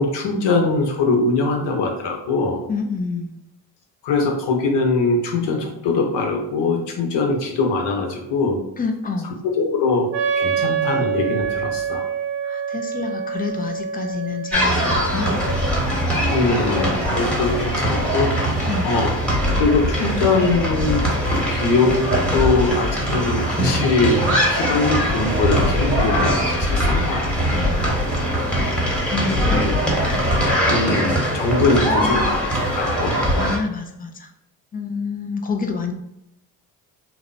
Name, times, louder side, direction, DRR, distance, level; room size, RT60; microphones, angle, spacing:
voice 1, 0.0-2.7 4.0-8.6 9.4-10.1 10.3-12.1 16.3-18.5 18.8-19.1 19.6-21.1 21.5-27.5 29.5-29.7 30.6-33.2, left 3 dB, 60° left, 1 dB, 0.8 m, -22 dB
voice 2, 2.7-3.4 8.8-9.3 12.4-15.4 18.7-18.9 27.5-28.0 29.1-29.7 31.6-32.4 33.3-34.3 34.7-35.9, left 4 dB, 20° left, 5 dB, 0.3 m, -28 dB
Wind instrument woodwind instrument, 10.1-15.7, right 7 dB, 50° right, 0.5 m, -26 dB
sound 1, 14.5-33.6, equal, ahead, 1.0 m, -21 dB
2.8 x 2.0 x 2.5 m, 0.84 s
hypercardioid pair, 55°, 48 cm